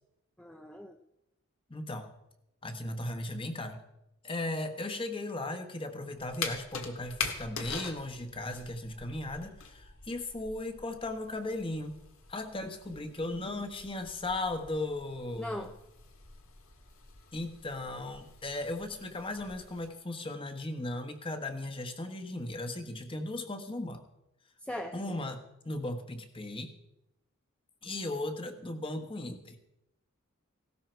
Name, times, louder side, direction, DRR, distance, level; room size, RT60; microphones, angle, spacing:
voice 1, 0.4-1.0 15.4-15.7 24.6-25.2, left 1 dB, 5° left, 4 dB, 0.7 m, -40 dB
voice 2, 1.7-2.1 2.6-3.8 4.2-12.0 12.3-15.7 17.3-24.0 24.9-26.7 27.8-29.6, left 2 dB, 25° left, 6 dB, 1.4 m, -37 dB
sound 1, 6.2-19.9, left 5 dB, 75° left, 1.9 m, -44 dB
17.0 x 13.0 x 4.6 m, 0.88 s
head